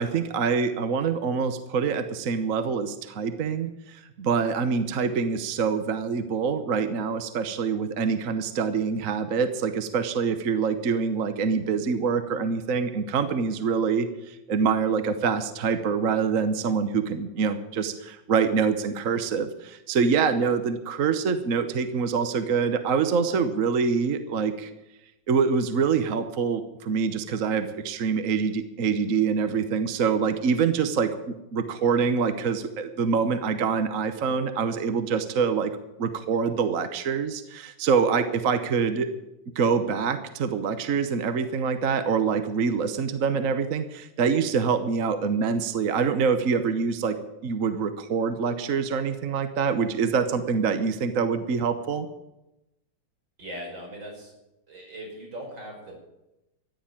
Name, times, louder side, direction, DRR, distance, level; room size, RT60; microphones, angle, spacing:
voice 1, 0.0-24.7 25.3-35.7 36.0-39.1 39.5-47.2 47.4-52.1, right 5 dB, 50° right, 9 dB, 1.2 m, -25 dB
voice 2, 53.4-54.3 54.7-55.9, equal, 75° right, 1 dB, 6.1 m, -39 dB
14.5 x 10.0 x 8.8 m, 0.92 s
omnidirectional pair, 2.1 m